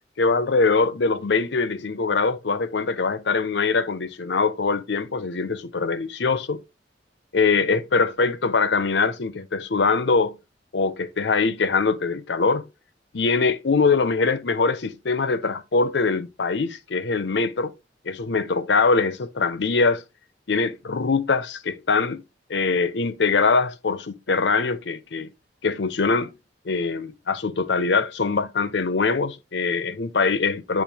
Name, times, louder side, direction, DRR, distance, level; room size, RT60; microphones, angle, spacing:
voice 1, 0.2-6.6 7.3-10.4 10.7-12.7 13.1-17.7 18.0-20.0 20.5-22.2 22.5-25.3 25.6-26.3 26.6-30.8, left 4 dB, 70° left, 0.7 m, -23 dB
8.3 x 3.3 x 3.4 m
head